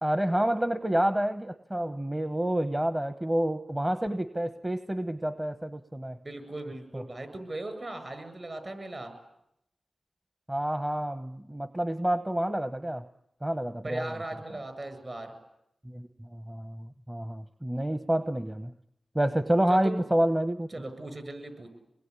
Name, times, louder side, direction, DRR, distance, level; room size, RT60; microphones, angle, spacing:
voice 1, 0.0-6.2 6.9-7.0 10.5-13.0 13.4-14.1 15.8-18.7 19.1-20.7, right 1 dB, 20° right, 10 dB, 1.1 m, -28 dB
voice 2, 6.2-9.1 13.8-15.3 19.7-20.0 20.7-21.7, right 2 dB, 45° right, 9 dB, 7.7 m, -38 dB
26.0 x 21.0 x 9.9 m, 0.82 s
cardioid pair, 50°, 0 cm